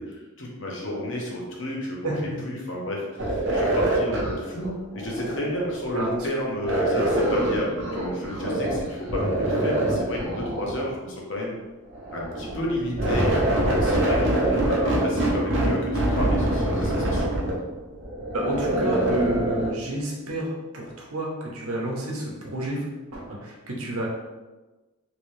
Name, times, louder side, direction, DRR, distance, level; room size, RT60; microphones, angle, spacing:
voice 1, 0.0-11.5 12.1-17.2, left 1 dB, 60° left, -2 dB, 0.8 m, -31 dB
sound 1, 3.2-6.0 6.6-8.8 9.1-10.9 11.9-19.7, right 1 dB, 55° right, 0.7 m, -25 dB
voice 2, 5.9-6.3 18.3-22.8 23.1-24.1, right 1 dB, 90° right, -2 dB, 0.9 m, -30 dB
3.0 x 2.7 x 3.2 m, 1.2 s
head